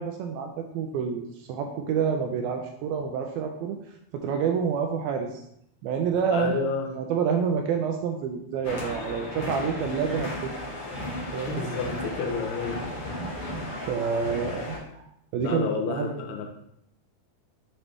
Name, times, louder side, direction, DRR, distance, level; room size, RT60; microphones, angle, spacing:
voice 1, 0.0-3.8 4.1-5.4 5.8-6.6 6.9-10.6 11.3-11.7 13.2-15.1 15.3-16.3, right 6 dB, 80° right, 4 dB, 2.2 m, -28 dB
voice 2, 6.3-6.9 11.5-12.8 15.4-16.4, left 5 dB, 80° left, 2 dB, 2.7 m, -30 dB
sound 1, 8.6-14.8, left 1 dB, 65° left, 1.4 m, -35 dB
7.2 x 4.0 x 3.4 m, 0.74 s
omnidirectional pair, 4.6 m